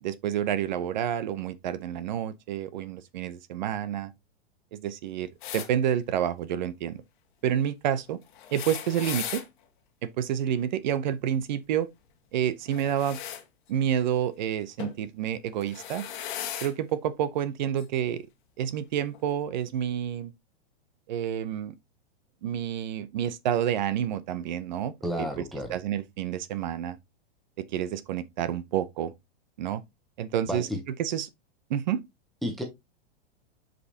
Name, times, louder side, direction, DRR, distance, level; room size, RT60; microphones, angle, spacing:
voice 1, 0.0-4.1 4.7-5.3 5.5-7.0 7.4-8.2 8.5-9.4 10.2-11.9 12.3-13.2 13.7-16.1 16.6-18.3 18.6-20.3 21.1-21.7 22.4-24.9 25.2-25.4 25.7-27.0 27.6-29.1 29.6-29.8 30.2-30.7 31.0-31.3 31.7-32.0, right 10 dB, 45° right, 0.7 m, -29 dB
sound 1, 5.4-5.7 8.3-9.5 12.7-13.4 14.8-15.0 15.6-16.7 17.8-17.9 19.1-19.2, left 10 dB, 50° left, 1.6 m, -37 dB
voice 2, 25.0-25.8 30.5-30.8 32.4-32.6, equal, ahead, 0.6 m, -31 dB
8.3 x 5.2 x 2.8 m
supercardioid pair, 170°, 32 cm